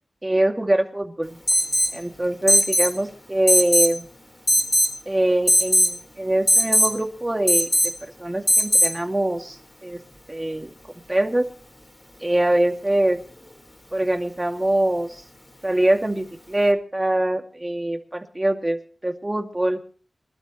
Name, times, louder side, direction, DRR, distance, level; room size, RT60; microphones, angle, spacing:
voice 1, 0.2-1.4 1.9-4.1 5.1-7.9 8.2-10.0 10.3-10.7 11.1-11.5 12.2-13.2 13.9-15.2 15.6-19.8, right 1 dB, 25° right, 4 dB, 2.5 m, -23 dB
Alarm, 1.5-2.0 2.5-2.9 3.5-4.0 4.5-4.9 5.5-5.9 6.5-6.9 7.5-7.9 8.5-8.9, left 1 dB, 25° left, 4.4 m, -18 dB
25.0 x 12.5 x 3.2 m, 0.41 s
cardioid pair, 50°, 0 cm